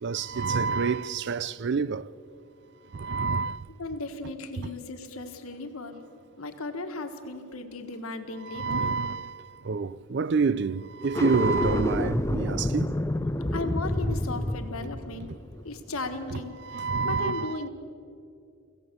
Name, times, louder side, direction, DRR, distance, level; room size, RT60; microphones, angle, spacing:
voice 1, 0.0-2.1 2.9-3.6 4.6-4.7 8.4-13.0 16.3-17.6, right 5 dB, 50° right, 0.4 m, -28 dB
voice 2, 3.8-6.0 6.4-9.0 13.5-15.3 15.6-17.7, left 2 dB, 80° left, 1.7 m, -36 dB
sound 1, 11.0-16.3, left 1 dB, 15° left, 0.4 m, -29 dB
24.0 x 16.0 x 6.9 m
head